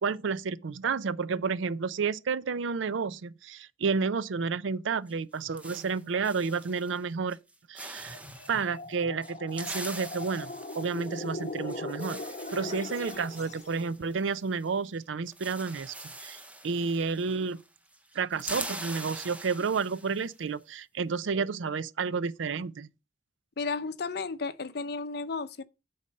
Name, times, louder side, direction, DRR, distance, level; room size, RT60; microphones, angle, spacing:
voice 1, 0.0-7.4 7.7-8.2 8.5-12.2 12.5-15.9 16.2-17.6 18.1-22.9, right 5 dB, 85° right, 0.5 m, -31 dB
sound 1, 5.1-7.0 7.3-7.5 7.8-8.6 9.2-14.7 14.9-15.0 15.3-17.7 17.9-20.3, right 1 dB, 5° right, 0.7 m, -43 dB
sound 2, 8.0-13.8, left 2 dB, 40° left, 1.2 m, -40 dB
voice 2, 23.6-25.6, left 4 dB, 55° left, 0.6 m, -33 dB
8.4 x 4.2 x 6.4 m
head